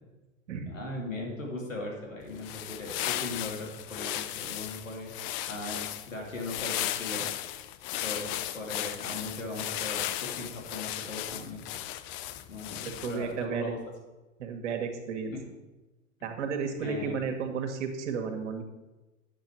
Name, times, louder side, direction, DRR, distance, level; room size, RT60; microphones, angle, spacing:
voice 1, 0.7-5.1 5.5-7.2 8.0-11.7 12.5-13.8 15.3-15.4 16.7-17.2, left 2 dB, 90° left, -1 dB, 2.5 m, -38 dB
sound 1, 2.3-13.3, left 13 dB, 30° left, 0.5 m, -36 dB
voice 2, 12.8-13.7 14.4-15.3 16.2-18.6, right 6 dB, 65° right, 4 dB, 1.6 m, -33 dB
9.3 x 7.2 x 4.5 m, 1.1 s
figure-of-eight pair, 95°, 38 cm